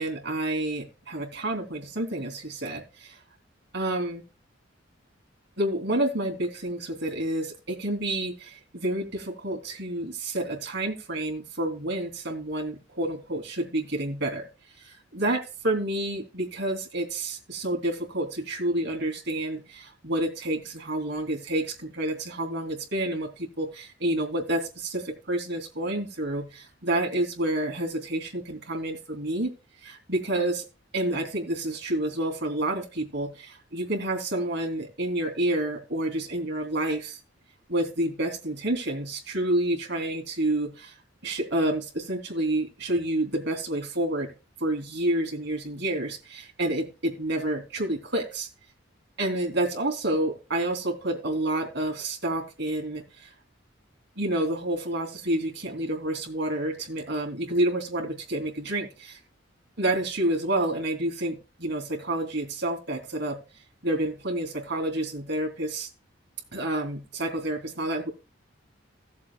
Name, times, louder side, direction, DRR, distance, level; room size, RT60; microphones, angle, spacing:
voice 1, 0.0-3.2 3.7-4.2 5.6-14.5 14.7-29.5 29.8-30.7 30.9-37.2 37.7-41.0 41.2-44.3 44.6-48.5 49.2-53.3 54.2-59.2 59.8-63.4 63.8-65.9 66.5-68.1, right 1 dB, 60° right, 3.2 m, -29 dB
17.5 x 7.5 x 2.3 m
head